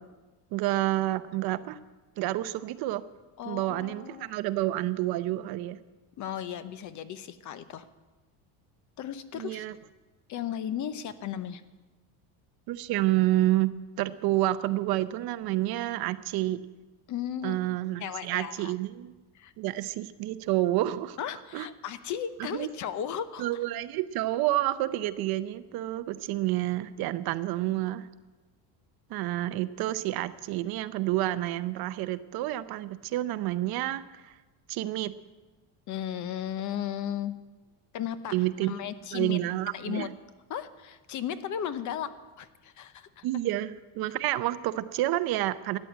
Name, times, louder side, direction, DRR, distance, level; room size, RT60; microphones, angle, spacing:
voice 1, 0.5-1.8 2.2-3.0 3.4-5.8 9.3-9.7 12.7-13.7 14.0-16.6 17.4-19.1 19.6-21.2 21.5-21.7 22.5-22.7 23.4-28.1 29.1-34.3 34.7-35.1 38.3-38.7 39.1-40.1 43.2-45.8, right 15 dB, 60° right, 13 dB, 0.7 m, -29 dB
voice 2, 3.4-4.3 6.2-7.9 9.0-9.7 10.3-11.6 17.1-17.6 18.0-18.7 19.3-19.5 21.2-23.5 35.9-37.3 37.9-38.4 38.7-39.4 39.7-40.1 40.5-43.2, left 9 dB, 45° left, 13 dB, 0.8 m, -35 dB
13.5 x 9.6 x 9.1 m, 1.2 s
cardioid pair, 160°, 42 cm